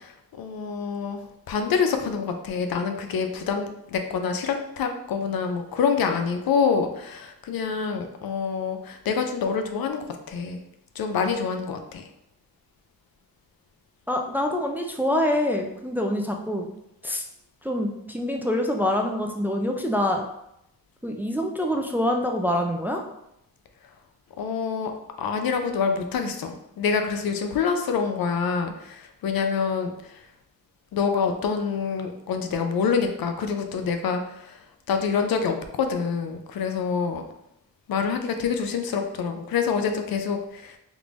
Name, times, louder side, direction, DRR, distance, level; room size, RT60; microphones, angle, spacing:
voice 1, 0.0-10.6 11.0-12.1 24.4-24.9 25.2-30.3 30.9-34.6 34.9-37.2 37.9-40.8, left 6 dB, 75° left, 6 dB, 0.5 m, -26 dB
voice 2, 14.1-16.7 17.0-17.2 17.6-20.2 21.0-23.0, left 1 dB, 5° right, 2 dB, 0.3 m, -25 dB
3.5 x 3.1 x 2.5 m, 0.80 s
cardioid pair, 70°, 36 cm